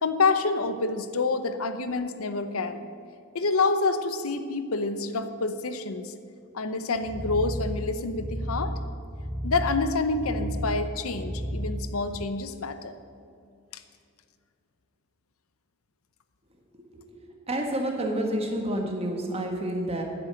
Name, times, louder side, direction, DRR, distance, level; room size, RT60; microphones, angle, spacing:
voice 1, 0.0-2.9 3.3-6.1 6.5-8.7 9.4-12.9 13.7-13.8, left 3 dB, 90° left, 10 dB, 0.8 m, -27 dB
sound 1, 7.0-12.3, equal, ahead, 0.5 m, -33 dB
voice 2, 16.7-20.0, right 1 dB, 30° right, 2 dB, 1.6 m, -30 dB
10.5 x 7.7 x 8.9 m, 2.3 s
head